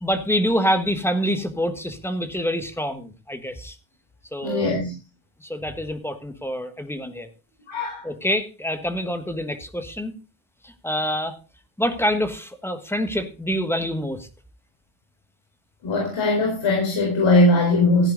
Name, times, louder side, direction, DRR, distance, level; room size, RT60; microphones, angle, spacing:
voice 1, 0.0-3.7 4.3-4.7 5.4-7.3 8.0-10.1 10.6-11.4 11.8-14.3, equal, 5° left, 9 dB, 1.4 m, -26 dB
voice 2, 4.4-4.9 7.7-8.0 15.8-18.1, left 2 dB, 70° left, 0 dB, 4.6 m, -20 dB
14.5 x 10.0 x 3.9 m, 0.30 s
wide cardioid pair, 155°, 47 cm